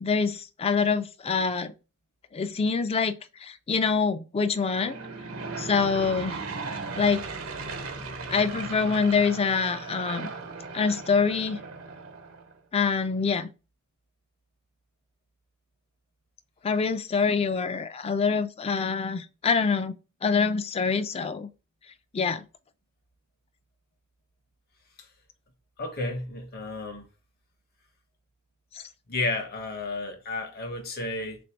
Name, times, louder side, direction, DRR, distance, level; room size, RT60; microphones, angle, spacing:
voice 1, 0.0-1.7 2.3-5.0 5.6-6.4 7.0-7.2 8.3-10.3 10.7-11.6 12.7-13.5 16.6-19.9 20.2-21.5 22.1-22.4, left 5 dB, 30° left, 0.4 m, -25 dB
Aircraft / Engine, 4.5-12.5, right 4 dB, 85° right, 0.9 m, -37 dB
voice 2, 25.8-27.0 29.1-31.4, left 2 dB, 50° left, 0.9 m, -32 dB
3.7 x 2.6 x 4.4 m
head